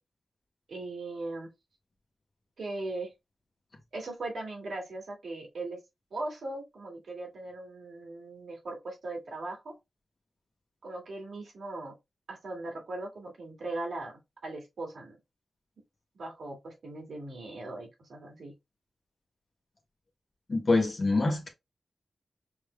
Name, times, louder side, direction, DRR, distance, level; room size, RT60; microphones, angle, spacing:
voice 1, 0.7-1.5 2.6-3.1 3.9-5.8 6.1-9.7 10.8-11.9 12.3-15.1 16.1-18.5, right 2 dB, 90° right, 2.2 m, -39 dB
voice 2, 20.5-21.5, left 3 dB, 45° left, 1.1 m, -25 dB
5.9 x 3.5 x 2.2 m
wide cardioid pair, 90°, 0 cm